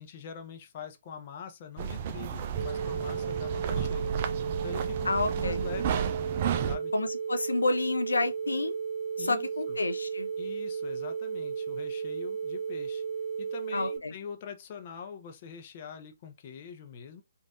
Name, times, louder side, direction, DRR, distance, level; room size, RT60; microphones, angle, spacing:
voice 1, 0.0-4.1 4.5-5.1 5.4-6.0 6.6-6.9 9.2-9.8 10.4-13.0 13.4-17.2, left 7 dB, 40° left, 0.7 m, -44 dB
sound 1, 1.8-6.8, right 8 dB, 40° right, 0.5 m, -32 dB
sound 2, 2.6-14.0, right 6 dB, 15° right, 1.0 m, -34 dB
voice 2, 5.0-5.6 6.9-8.8 9.2-10.3 13.7-14.1, left 3 dB, 90° left, 0.4 m, -29 dB
3.4 x 2.6 x 2.5 m
hypercardioid pair, 145°, 0 cm